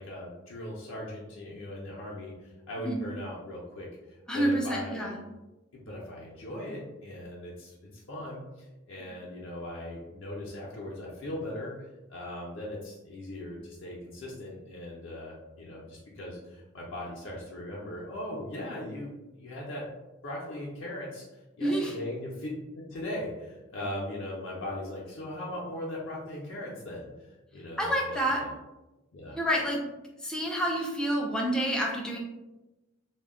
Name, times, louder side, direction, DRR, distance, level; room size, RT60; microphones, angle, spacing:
voice 1, 0.0-5.1 5.7-11.7 12.1-19.9 20.2-21.3 21.6-28.5 29.1-29.4, left 1 dB, 60° left, -4 dB, 0.5 m, -39 dB
voice 2, 4.3-5.2 21.6-21.9 27.8-28.4 29.3-29.8 30.2-32.2, right 1 dB, 5° left, -2 dB, 0.3 m, -28 dB
2.2 x 2.0 x 3.5 m, 1.0 s
head